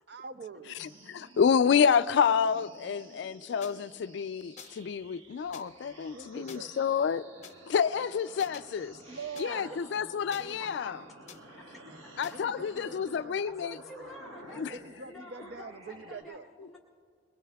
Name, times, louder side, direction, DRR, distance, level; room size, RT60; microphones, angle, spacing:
voice 1, 0.1-0.8 6.1-6.9 9.1-9.8 10.4-10.7 11.7-12.0 12.3-13.4 14.7-16.5, right 4 dB, 55° right, 0.5 m, -44 dB
voice 2, 0.8-7.2 7.7-9.0 9.4-11.0 12.2-13.8 14.6-14.8, left 7 dB, 65° left, 0.3 m, -28 dB
sound 1, 0.8-16.2, right 1 dB, 85° right, 1.3 m, -53 dB
sound 2, 3.6-3.7 4.6-4.9 5.5-5.6 6.5-6.6 7.4-7.5 8.4-8.6 9.4-9.5 10.3-10.8 11.3-11.4 12.2-12.4, left 6 dB, 35° left, 0.9 m, -48 dB
voice 3, 9.4-10.2 10.6-11.2 12.3-12.9 13.3-14.8 15.0-16.8, left 1 dB, ahead, 1.2 m, -49 dB
23.0 x 20.5 x 2.3 m
head